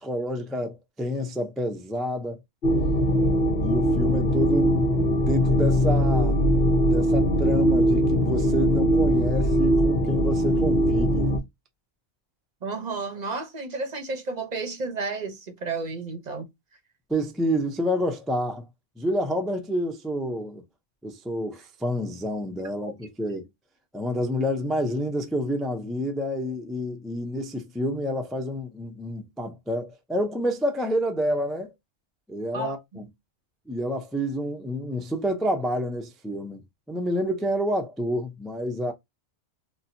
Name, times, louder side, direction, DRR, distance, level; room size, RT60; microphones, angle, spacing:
voice 1, 0.0-2.4 3.6-6.4 6.8-11.3 17.1-18.7 19.0-20.6 21.0-23.5 23.9-31.7 32.3-33.1 33.7-36.6 36.9-38.9, equal, ahead, 0.3 m, -28 dB
sound 1, 2.6-11.4, equal, 60° left, 1.0 m, -21 dB
voice 2, 12.6-16.4 32.5-33.1, right 3 dB, 45° right, 0.7 m, -32 dB
4.2 x 2.2 x 2.6 m
omnidirectional pair, 1.1 m